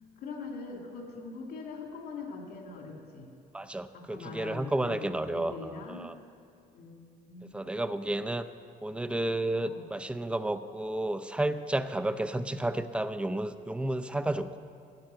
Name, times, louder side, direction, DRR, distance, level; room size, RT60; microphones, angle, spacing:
voice 1, 0.2-3.3 3.9-6.1 6.7-7.5 9.6-9.9, left 4 dB, 75° left, 2 dB, 2.6 m, -42 dB
voice 2, 3.5-6.2 7.5-8.5 8.8-14.6, right 1 dB, 5° right, 11 dB, 0.5 m, -31 dB
13.5 x 8.5 x 7.6 m, 2.4 s
cardioid pair, 110°, 17 cm